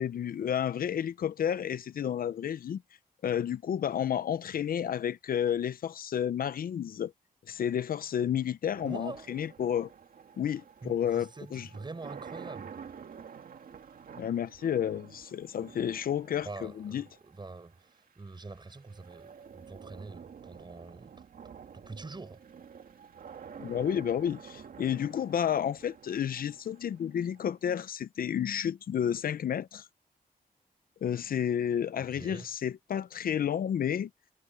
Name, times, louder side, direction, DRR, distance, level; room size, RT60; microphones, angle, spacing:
voice 1, 0.0-2.8 3.2-7.1 7.5-9.9 10.4-11.7 14.2-17.0 23.6-29.9 31.0-34.1, left 9 dB, 75° left, 0.6 m, -31 dB
sound 1, 8.7-27.8, right 7 dB, 70° right, 2.1 m, -50 dB
voice 2, 8.8-9.3 10.8-12.8 16.4-21.1 21.7-22.4 32.0-32.5, right 3 dB, 30° right, 7.3 m, -45 dB
cardioid pair, 95°, 15 cm